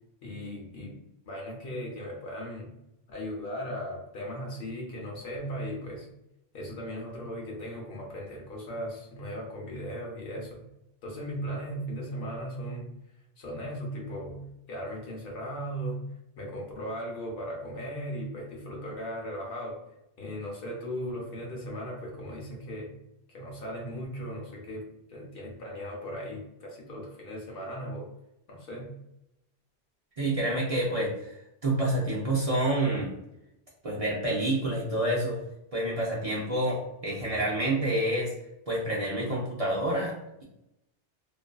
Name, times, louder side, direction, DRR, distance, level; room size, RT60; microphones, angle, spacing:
voice 1, 0.2-1.0 1.2-2.7 3.1-6.1 6.5-10.6 11.0-12.9 13.4-14.4 14.7-16.0 16.4-19.8 20.2-22.9 23.3-24.8 25.1-28.1 28.5-28.9, equal, 65° left, -1 dB, 0.9 m, -37 dB
voice 2, 30.2-31.3 31.6-33.1 33.8-35.4 35.7-38.3 38.7-40.1, right 1 dB, 45° right, -5 dB, 0.5 m, -28 dB
2.5 x 2.5 x 2.2 m, 0.86 s
omnidirectional pair, 1.1 m